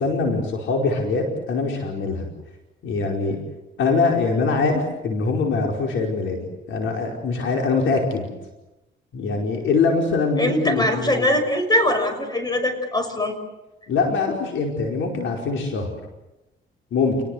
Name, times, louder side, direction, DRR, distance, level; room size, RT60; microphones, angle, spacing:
voice 1, 0.0-2.3 2.8-3.4 3.8-6.4 6.7-8.3 9.1-11.3 13.9-15.9 16.9-17.2, left 4 dB, 75° left, 2 dB, 4.9 m, -23 dB
voice 2, 10.4-13.4, left 1 dB, 20° left, 7 dB, 6.2 m, -22 dB
28.5 x 19.5 x 8.1 m, 0.99 s
cardioid pair, 90°, 20 cm